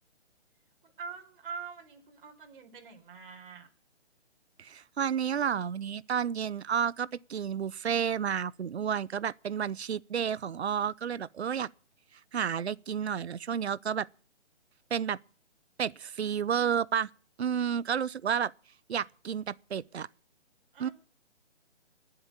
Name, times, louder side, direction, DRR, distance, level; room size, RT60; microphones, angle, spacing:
voice 1, 1.0-3.7 20.7-20.9, right 5 dB, 50° right, 4.3 m, -44 dB
voice 2, 4.6-11.7 12.3-14.1 14.9-15.2 15.8-17.1 17.4-18.5 18.9-20.1 20.8-20.9, right 8 dB, 70° right, 0.8 m, -31 dB
20.5 x 8.0 x 8.5 m
hypercardioid pair, 150°, 34 cm